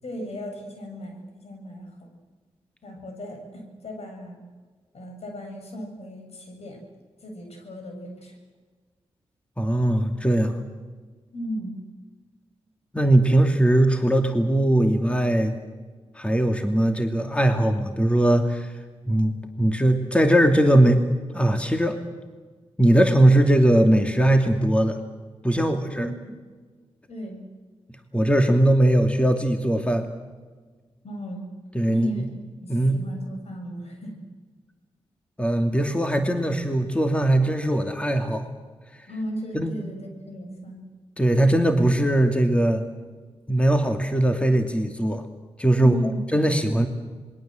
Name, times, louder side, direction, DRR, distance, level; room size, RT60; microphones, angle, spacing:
voice 1, 0.0-2.1 2.8-4.4 4.9-6.8 7.2-8.3 11.3-11.8 25.9-26.3 27.1-27.4 31.0-31.4 31.9-32.3 32.6-34.1 39.1-40.8 45.8-46.2, equal, 70° left, 3 dB, 7.4 m, -35 dB
voice 2, 9.6-10.6 12.9-15.5 16.1-18.7 19.1-19.3 19.6-21.0 21.3-22.0 22.8-25.0 25.4-26.1 28.1-30.1 31.7-32.2 32.7-33.0 35.4-38.5 39.5-39.7 41.2-42.8 43.5-45.2 45.6-46.0 46.3-46.9, right 1 dB, 10° left, 5 dB, 2.6 m, -20 dB
26.5 x 21.5 x 7.8 m, 1.4 s
cardioid pair, 50°, 11 cm